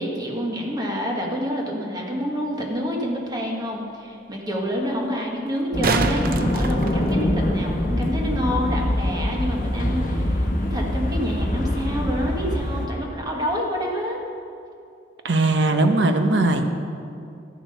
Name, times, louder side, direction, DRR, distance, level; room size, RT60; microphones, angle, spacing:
voice 1, 0.0-14.2, equal, 20° right, -1 dB, 1.4 m, -27 dB
sound 1, 2.6-2.7 5.5-7.6 10.5-10.6, right 3 dB, 50° right, 0.5 m, -27 dB
sound 2, 5.7-12.9, left 1 dB, 45° left, 1.0 m, -24 dB
voice 2, 15.2-16.7, right 2 dB, 70° right, 6 dB, 0.9 m, -19 dB
12.5 x 7.1 x 5.6 m, 2.5 s
head